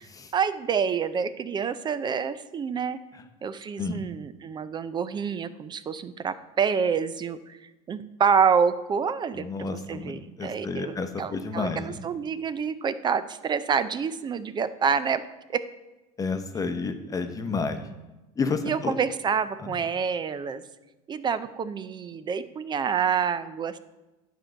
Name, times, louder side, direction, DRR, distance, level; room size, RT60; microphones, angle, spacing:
voice 1, 0.3-3.0 3.4-7.6 7.9-15.2 15.5-15.6 18.6-20.6 21.1-23.8, right 6 dB, 25° right, 13 dB, 0.5 m, -27 dB
voice 2, 9.3-12.0 16.2-17.9 18.4-18.9, left 4 dB, 20° left, 8 dB, 0.9 m, -30 dB
10.0 x 4.6 x 6.3 m, 1.1 s
supercardioid pair, 125°, 17 cm